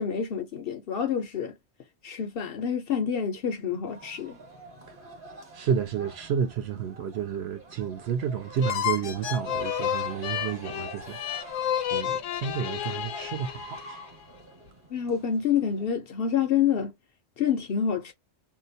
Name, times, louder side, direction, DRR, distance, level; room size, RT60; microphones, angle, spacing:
voice 1, 0.0-1.6 2.0-4.4 14.9-16.9 17.4-18.1, left 8 dB, 60° left, 0.6 m, -27 dB
sound 1, 3.8-15.9, right 1 dB, 45° right, 1.4 m, -45 dB
voice 2, 5.5-11.2 11.9-14.0, right 7 dB, 65° right, 0.8 m, -30 dB
sound 2, 8.6-14.1, left 11 dB, 80° left, 1.0 m, -31 dB
2.8 x 2.1 x 2.6 m
omnidirectional pair, 1.3 m